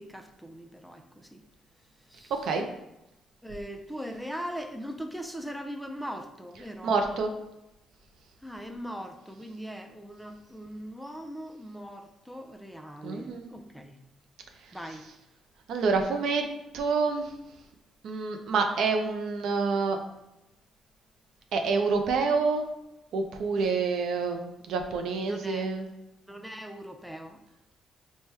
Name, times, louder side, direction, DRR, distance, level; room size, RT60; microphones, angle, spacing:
voice 1, 0.0-1.4 2.1-2.3 3.4-7.0 8.4-14.0 14.7-15.0 25.2-25.7 26.3-27.4, equal, ahead, 4 dB, 0.4 m, -40 dB
voice 2, 6.8-7.3 13.0-13.5 15.7-16.4 16.7-17.3 18.0-20.0 21.5-22.6 23.1-25.9, right 4 dB, 75° right, 5 dB, 0.4 m, -27 dB
4.4 x 2.2 x 3.3 m, 0.90 s
cardioid pair, 90°, 0 cm